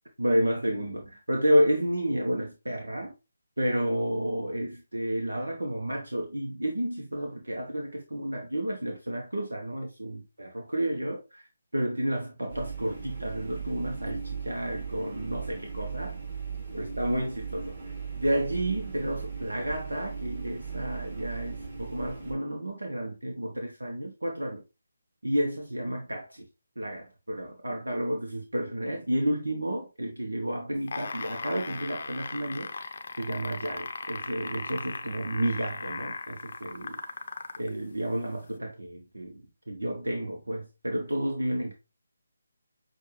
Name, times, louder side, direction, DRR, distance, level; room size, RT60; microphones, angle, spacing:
voice 1, 0.2-3.1 3.6-11.4 11.7-16.2 16.7-24.6 25.2-26.4 26.8-37.0 37.6-41.7, equal, 80° right, 0.9 m, -31 dB
sound 1, 12.5-22.3, right 6 dB, 40° right, 2.4 m, -38 dB
sound 2, 30.8-37.7 38.5-38.6, left 4 dB, 50° left, 0.6 m, -37 dB
6.4 x 2.4 x 3.1 m
figure-of-eight pair, 150°, 0 cm